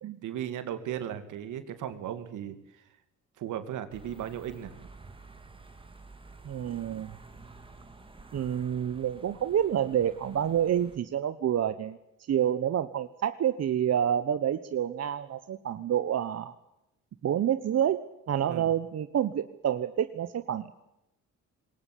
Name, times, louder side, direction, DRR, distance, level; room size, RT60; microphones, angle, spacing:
voice 1, 0.2-2.8 3.4-4.7 18.4-18.7, right 10 dB, 80° right, 9 dB, 2.6 m, -36 dB
sound 1, 3.9-11.0, right 3 dB, 15° right, 2.7 m, -51 dB
voice 2, 6.4-7.1 8.3-16.5 17.2-20.7, right 10 dB, 55° right, 11 dB, 1.2 m, -28 dB
21.0 x 19.0 x 8.6 m, 0.85 s
cardioid pair, 90°, 30 cm